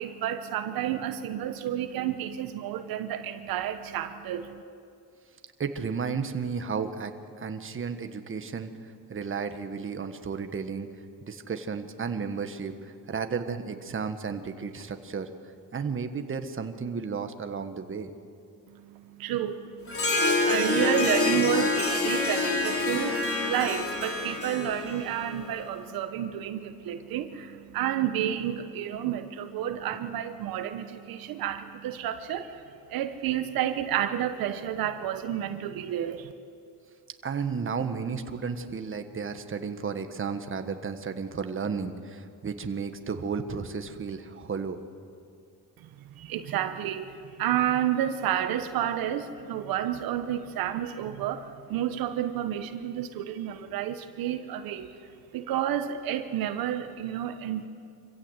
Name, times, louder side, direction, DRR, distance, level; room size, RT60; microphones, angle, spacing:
voice 1, 0.0-4.6 18.7-32.6 32.9-36.3 45.8-54.9 55.3-57.7, right 11 dB, 80° right, 8 dB, 1.2 m, -30 dB
voice 2, 5.6-7.1 7.4-8.7 9.1-10.9 11.3-15.3 15.7-18.1 37.2-44.8, right 5 dB, 35° right, 7 dB, 1.6 m, -33 dB
Harp, 19.9-25.6, left 3 dB, 40° left, 3.7 m, -27 dB
25.5 x 16.0 x 8.2 m, 2.4 s
cardioid pair, 90°, 35 cm